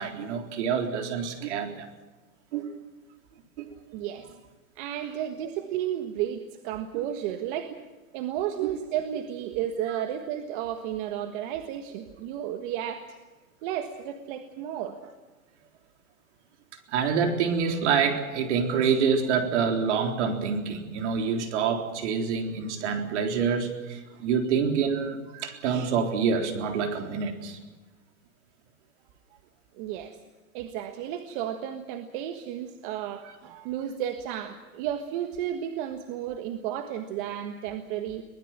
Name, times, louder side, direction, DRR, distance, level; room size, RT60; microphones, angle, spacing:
voice 1, 0.0-1.9 2.5-2.8 3.6-3.8 8.6-8.7 16.9-27.6, right 6 dB, 50° right, 5 dB, 4.0 m, -27 dB
voice 2, 3.9-4.3 4.7-7.7 8.1-13.2 13.6-15.0 29.8-30.2 30.5-38.2, right 10 dB, 35° right, 7 dB, 1.6 m, -33 dB
23.0 x 20.0 x 7.4 m, 1.2 s
hypercardioid pair, 155°, 43 cm